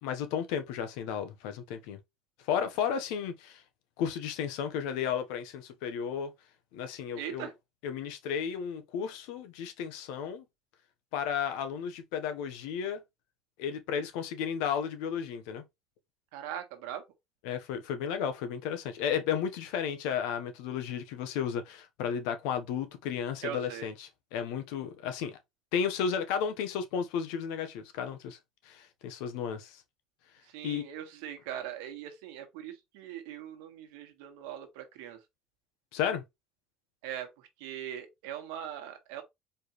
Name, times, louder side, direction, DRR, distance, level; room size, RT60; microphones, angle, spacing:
voice 1, 0.0-2.0 2.5-3.6 4.0-6.3 6.7-7.5 7.8-10.4 11.1-13.0 13.6-15.6 17.4-25.4 25.7-28.4 28.6-29.8 30.6-30.8 35.9-36.2, left 8 dB, 80° left, 0.9 m, -33 dB
voice 2, 7.2-7.5 16.3-17.0 23.4-23.9 30.5-35.2 37.0-37.3 37.6-39.2, right 10 dB, 90° right, 1.3 m, -40 dB
4.5 x 3.3 x 3.0 m
cardioid pair, 135°, 0 cm